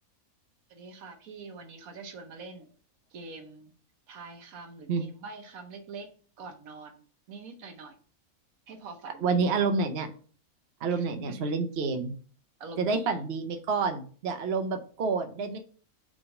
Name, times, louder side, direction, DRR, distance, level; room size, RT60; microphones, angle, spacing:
voice 1, 0.7-2.7 3.1-3.7 4.1-6.1 6.4-7.0 7.3-8.0 8.7-9.5 10.9-11.5 12.6-13.2, right 4 dB, 75° right, 6 dB, 1.3 m, -45 dB
voice 2, 9.2-10.1 10.8-12.1 12.8-15.6, right 4 dB, 55° right, 6 dB, 0.9 m, -28 dB
5.0 x 3.5 x 5.2 m, 0.43 s
omnidirectional pair, 1.5 m